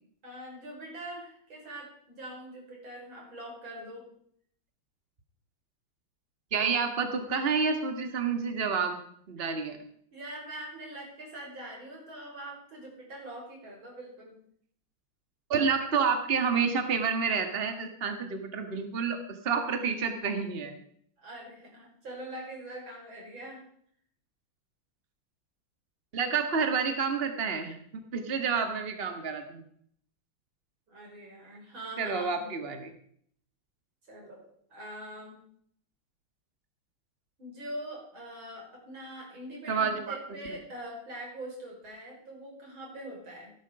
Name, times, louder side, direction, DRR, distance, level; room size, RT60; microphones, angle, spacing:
voice 1, 0.2-4.1 10.1-14.3 21.2-23.6 30.9-32.5 34.1-34.4 34.7-35.4 37.4-43.5, right 1 dB, 70° right, -1 dB, 6.4 m, -43 dB
voice 2, 6.5-9.0 9.3-9.8 15.5-19.2 19.4-20.7 26.1-29.6 32.0-32.9 39.7-40.2, right 5 dB, 30° right, 6 dB, 1.8 m, -29 dB
17.5 x 12.5 x 4.9 m, 0.63 s
omnidirectional pair, 2.3 m